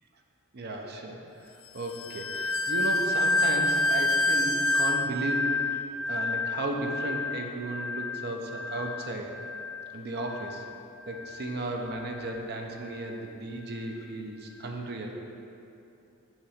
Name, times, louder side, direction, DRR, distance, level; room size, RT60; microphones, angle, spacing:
voice 1, 0.5-1.2 1.7-5.6 6.1-9.3 9.9-10.7 11.1-15.1, right 2 dB, 50° right, 2 dB, 0.5 m, -35 dB
sound 1, 1.9-10.9 11.2-11.6 12.1-12.4, left 2 dB, 65° left, 0.4 m, -29 dB
7.1 x 3.0 x 4.9 m, 2.8 s
head